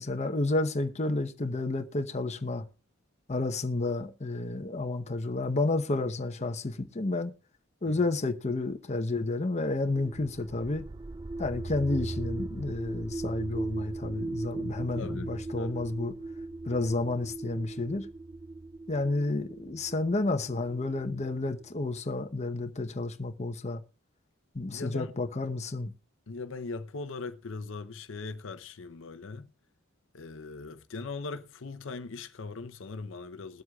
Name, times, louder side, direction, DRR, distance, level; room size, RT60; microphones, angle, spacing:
voice 1, 0.0-2.6 3.3-7.3 7.8-10.9 11.4-16.1 16.7-18.1 18.9-23.8 24.5-25.9, left 2 dB, 35° left, 0.9 m, -31 dB
sound 1, 10.0-21.8, right 2 dB, 20° right, 0.4 m, -38 dB
voice 2, 14.9-15.8 24.7-25.1 26.3-29.5 30.1-33.6, left 4 dB, 70° left, 0.7 m, -40 dB
21.0 x 7.8 x 2.3 m
head